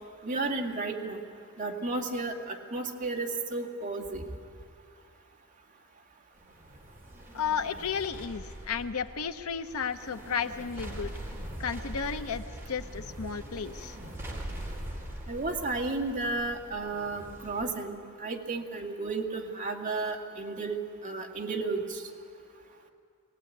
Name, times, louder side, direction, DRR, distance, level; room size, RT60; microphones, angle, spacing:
voice 1, 0.2-1.2 1.6-4.3 15.3-20.8 21.0-22.0, right 3 dB, 35° right, 0 dB, 2.2 m, -33 dB
sound 1, 6.4-17.6, right 1 dB, 10° right, 3.7 m, -42 dB
voice 2, 7.3-11.1 11.6-14.0, left 6 dB, 75° left, 10 dB, 0.8 m, -33 dB
21.5 x 18.0 x 9.3 m, 2.3 s
head